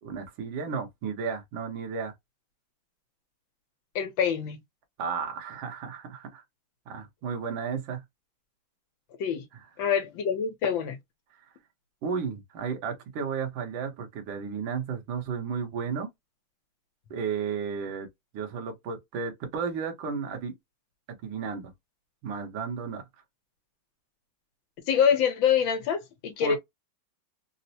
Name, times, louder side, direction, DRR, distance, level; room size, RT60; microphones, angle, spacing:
voice 1, 0.0-2.1 5.0-6.4 6.9-8.0 9.5-9.6 11.4-11.5 12.0-16.1 17.1-18.1 18.3-20.5 21.2-21.7 22.2-23.0 26.4-26.6, right 6 dB, 70° right, 1.6 m, -33 dB
voice 2, 3.9-4.6 9.2-9.4 9.8-11.0 24.9-26.6, left 7 dB, 70° left, 1.5 m, -25 dB
4.1 x 2.0 x 2.7 m
omnidirectional pair, 2.3 m